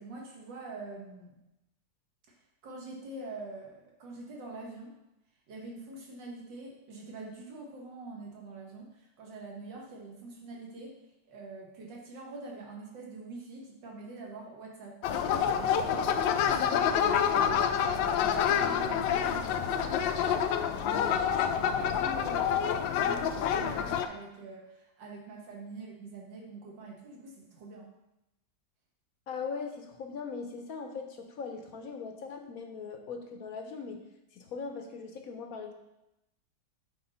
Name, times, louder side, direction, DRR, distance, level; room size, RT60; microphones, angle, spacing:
voice 1, 0.0-1.3 2.3-2.4 2.6-4.9 5.5-11.0 11.3-27.9, right 3 dB, 75° right, -1 dB, 2.1 m, -45 dB
sound 1, 15.0-24.1, left 8 dB, 90° left, 1.3 m, -27 dB
voice 2, 29.3-34.0 34.3-35.7, left 5 dB, 65° left, 4 dB, 1.0 m, -40 dB
7.7 x 4.1 x 5.4 m, 0.91 s
omnidirectional pair, 2.0 m